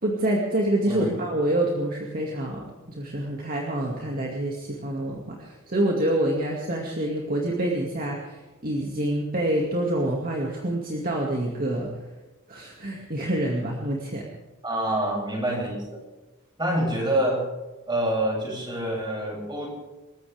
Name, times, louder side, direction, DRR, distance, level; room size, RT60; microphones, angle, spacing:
voice 1, 0.0-11.9 12.5-14.2, right 1 dB, 45° right, -1 dB, 2.4 m, -27 dB
voice 2, 14.6-16.0 16.6-17.5 17.9-19.7, right 1 dB, 20° right, -2 dB, 7.6 m, -26 dB
27.5 x 15.0 x 3.6 m, 1.1 s
head